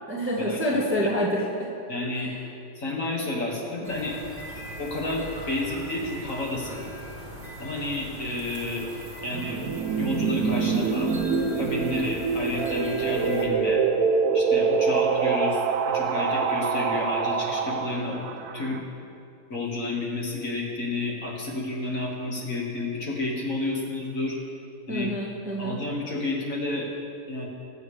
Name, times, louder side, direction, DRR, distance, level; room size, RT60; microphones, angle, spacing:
voice 1, 0.1-1.7 2.1-2.3 24.9-25.8, equal, 10° right, -4 dB, 1.1 m, -27 dB
voice 2, 1.9-2.3 2.8-4.2 4.7-6.8 7.6-8.9 9.2-9.6 9.9-11.1 11.5-13.8 14.3-18.2 18.5-18.8 19.5-24.4 24.9-25.1 25.6-26.9 27.3-27.5, left 2 dB, 50° left, -3 dB, 2.1 m, -30 dB
sound 1, 3.8-13.4, equal, 25° right, 1.8 m, -41 dB
sound 2, 9.3-18.8, right 5 dB, 70° right, 1.1 m, -25 dB
20.0 x 7.8 x 3.3 m, 2.6 s
omnidirectional pair, 1.8 m